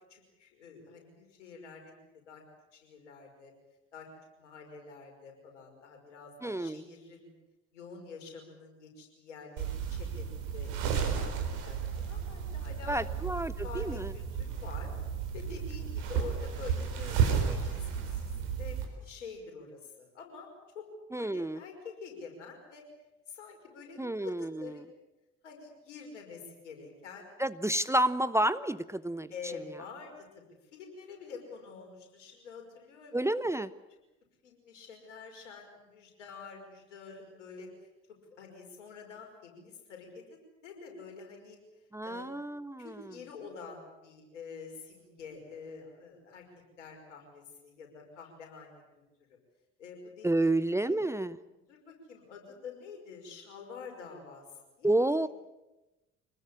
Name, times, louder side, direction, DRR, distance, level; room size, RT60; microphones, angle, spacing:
voice 1, 0.1-1.9 2.3-2.4 2.7-3.5 3.9-4.1 4.4-7.3 7.7-13.1 13.6-14.9 15.3-18.2 18.6-20.5 20.7-20.9 21.1-22.8 23.3-25.0 25.4-27.4 29.3-30.4 30.7-33.2 34.4-37.7 38.3-40.2 40.6-41.6 42.0-42.4 42.8-46.4 46.8-49.0 49.8-51.1 51.7-54.9, left 5 dB, 80° left, 2 dB, 5.6 m, -47 dB
voice 2, 6.4-6.8 12.9-14.1 21.1-21.6 24.0-24.7 27.4-29.3 33.1-33.7 41.9-43.0 50.2-51.4 54.8-55.3, right 1 dB, 10° right, 15 dB, 0.8 m, -30 dB
sound 1, 9.6-18.9, right 7 dB, 65° right, 4.4 m, -33 dB
25.5 x 20.0 x 8.6 m, 1.0 s
figure-of-eight pair, 50°, 36 cm